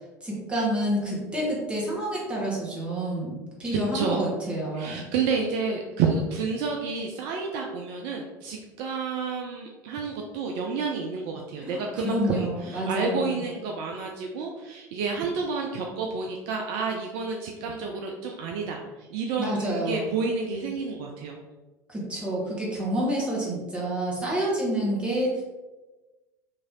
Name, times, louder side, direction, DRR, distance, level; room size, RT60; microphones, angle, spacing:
voice 1, 0.2-5.0 11.6-13.4 19.4-20.1 21.9-25.4, right 1 dB, 10° right, -5 dB, 1.4 m, -28 dB
voice 2, 3.7-4.3 4.7-21.4, right 4 dB, 50° right, 1 dB, 0.4 m, -30 dB
3.1 x 2.6 x 3.7 m, 1.2 s
figure-of-eight pair, 70°, 10 cm